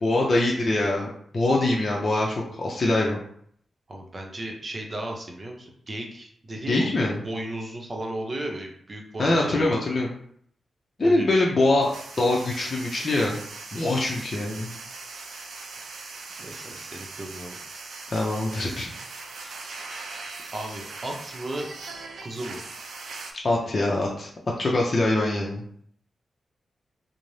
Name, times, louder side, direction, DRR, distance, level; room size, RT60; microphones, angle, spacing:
voice 1, 0.0-3.2 6.7-7.2 9.2-10.1 11.0-13.4 13.7-14.7 18.1-18.9 23.4-24.3 24.6-25.6, left 2 dB, 50° left, -3 dB, 0.5 m, -23 dB
voice 2, 3.9-9.8 11.0-11.5 16.4-17.6 19.4-19.5 20.5-21.7 22.2-22.6, right 1 dB, 45° right, 1 dB, 0.7 m, -35 dB
sound 1, 11.8-23.3, right 3 dB, 80° right, 0.4 m, -40 dB
2.5 x 2.0 x 3.1 m, 0.64 s
supercardioid pair, 45°, 0 cm